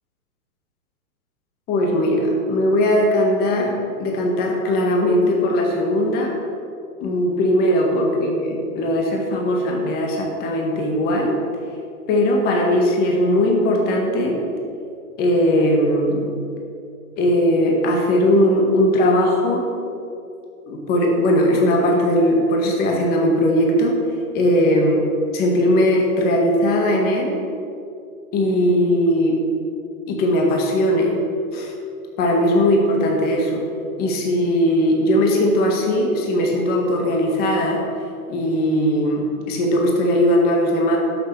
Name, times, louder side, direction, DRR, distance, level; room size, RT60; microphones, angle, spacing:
voice 1, 1.7-6.3 7.0-11.4 12.1-14.4 15.2-16.3 17.2-19.7 20.7-24.0 24.3-25.1 25.3-27.3 28.3-29.4 30.1-31.1 31.5-31.7 32.2-33.7 34.0-37.8 38.3-41.0, equal, 20° left, 1 dB, 1.7 m, -19 dB
11.5 x 6.8 x 7.0 m, 2.5 s
hypercardioid pair, 155°, 44 cm